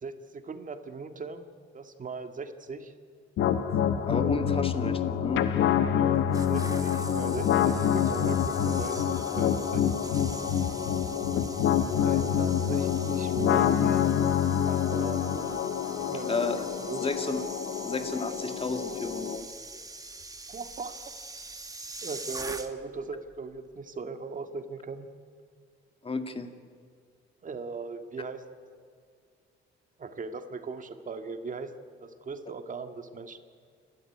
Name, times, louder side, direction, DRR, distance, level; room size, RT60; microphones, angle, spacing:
voice 1, 0.0-1.4 1.7-2.9 5.9-6.2 6.5-10.1 12.0-14.1 14.6-15.5 16.1-16.5 16.8-17.1 20.5-21.1 22.0-25.1 27.4-28.4 30.0-31.7 32.0-33.4, right 4 dB, 40° right, 8 dB, 1.9 m, -39 dB
sound 1, 3.4-19.4, left 9 dB, 80° left, 1.2 m, -27 dB
voice 2, 4.1-5.4 16.3-16.6 17.0-17.4 17.8-19.5 26.0-26.5, left 3 dB, 30° left, 7 dB, 2.2 m, -32 dB
sound 2, 6.1-23.0 23.3-23.6, right 3 dB, 20° right, 1.7 m, -44 dB
29.0 x 12.5 x 9.7 m, 2.2 s
cardioid pair, 90°, 20 cm